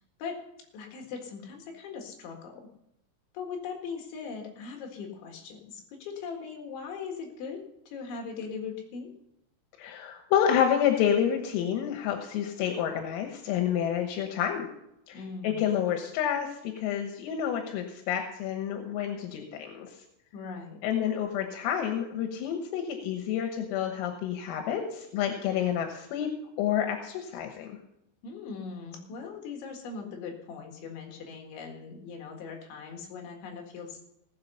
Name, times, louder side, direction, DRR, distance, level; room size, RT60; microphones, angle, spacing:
voice 1, 0.7-2.7 3.3-7.6 7.9-9.1 15.1-15.6 20.3-20.8 28.2-34.0, left 5 dB, 70° left, 2 dB, 4.0 m, -40 dB
voice 2, 9.8-14.7 15.1-19.9 20.8-26.3 26.6-27.8, left 9 dB, 85° left, 4 dB, 3.8 m, -29 dB
18.0 x 7.8 x 5.6 m, 0.82 s
omnidirectional pair, 5.9 m